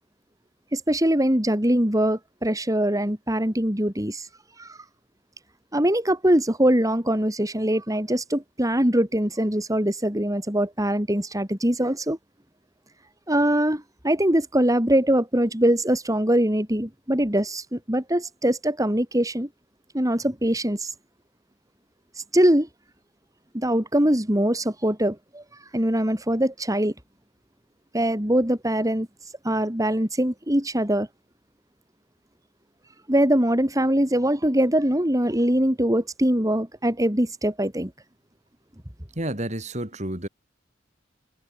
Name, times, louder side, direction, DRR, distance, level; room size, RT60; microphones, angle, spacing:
voice 1, 0.7-4.2 4.6-4.8 5.7-12.2 13.3-19.5 19.9-20.9 22.3-22.7 23.5-25.4 25.7-26.9 27.9-29.1 29.4-31.1 33.1-37.9, right 1 dB, 20° right, 4.6 m, -22 dB
voice 2, 39.1-40.3, right 1 dB, 40° right, 4.8 m, -30 dB
head